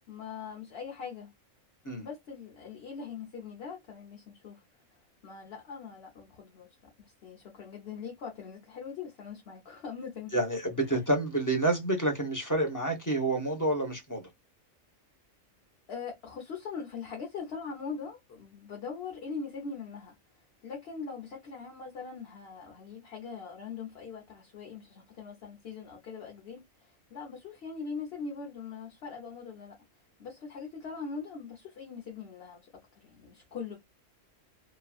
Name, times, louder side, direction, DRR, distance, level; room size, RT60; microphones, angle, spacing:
voice 1, 0.1-1.3 2.0-4.6 5.2-10.3 15.9-20.2 20.6-29.8 30.2-32.7 32.9-33.8, left 5 dB, 55° left, 1.1 m, -41 dB
voice 2, 10.3-14.3, right 2 dB, 15° left, 0.9 m, -28 dB
3.1 x 2.4 x 2.3 m
omnidirectional pair, 1.3 m